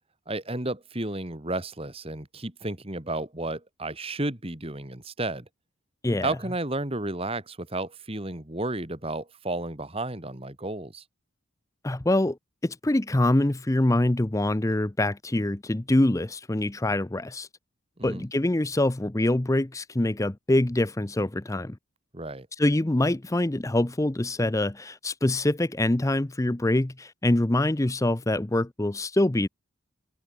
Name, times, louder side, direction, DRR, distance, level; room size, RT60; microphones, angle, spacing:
voice 1, 0.3-5.5 6.2-11.0 18.0-18.2 22.1-22.5, right 2 dB, 25° right, 2.0 m, -32 dB
voice 2, 6.0-6.4 11.8-12.4 12.6-17.5 18.0-21.8 22.6-29.5, left 1 dB, 15° left, 0.6 m, -24 dB
head